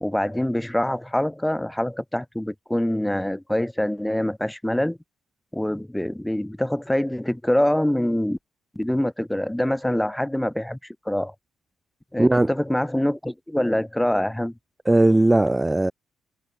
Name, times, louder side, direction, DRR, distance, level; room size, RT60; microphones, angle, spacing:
voice 1, 0.0-5.0 5.5-8.4 8.7-11.3 12.1-14.5, left 1 dB, 5° left, 0.9 m, -25 dB
voice 2, 12.2-12.5 14.9-15.9, right 2 dB, 10° right, 0.3 m, -18 dB
cardioid pair, 90°, 0 cm